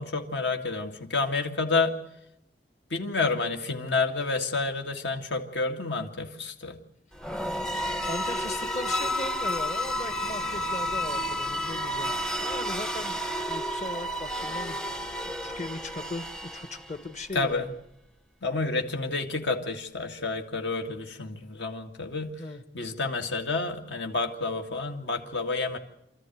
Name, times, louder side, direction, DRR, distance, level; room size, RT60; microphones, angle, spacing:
voice 1, 0.0-1.9 2.9-6.8 17.3-17.7 18.4-22.3 22.7-25.8, left 3 dB, 70° left, 4 dB, 2.1 m, -29 dB
sound 1, 7.1-17.1, equal, 5° left, 0.8 m, -31 dB
voice 2, 8.1-12.1 12.4-13.2 13.5-17.7 21.3-21.5 22.4-22.6, left 2 dB, 40° left, 10 dB, 1.4 m, -38 dB
26.5 x 14.0 x 9.3 m, 0.77 s
head